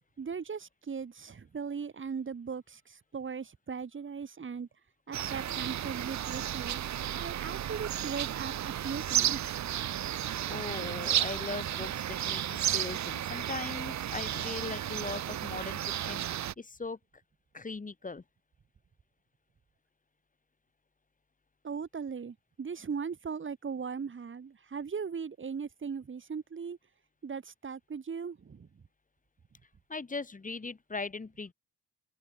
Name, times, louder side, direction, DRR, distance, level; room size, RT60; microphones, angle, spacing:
voice 1, 0.2-4.7 5.1-9.7 21.6-26.8 27.2-28.7, right 6 dB, 40° right, 7.3 m, -38 dB
sound 1, 5.1-16.5, right 11 dB, 65° right, 2.3 m, -33 dB
voice 2, 10.5-17.0 17.5-18.2 29.9-31.5, left 4 dB, 25° left, 7.2 m, -39 dB
open air
cardioid pair, 90°, 30 cm